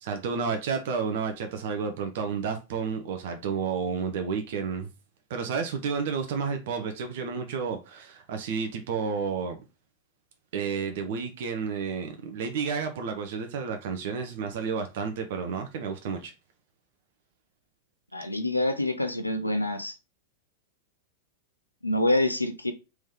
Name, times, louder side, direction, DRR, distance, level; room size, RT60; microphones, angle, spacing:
voice 1, 0.0-4.9 5.3-9.6 10.5-16.3, right 5 dB, 55° right, 0.6 m, -31 dB
voice 2, 18.1-19.9 21.8-22.7, left 1 dB, 85° left, 0.5 m, -26 dB
3.5 x 3.1 x 3.4 m
figure-of-eight pair, 90°, 0 cm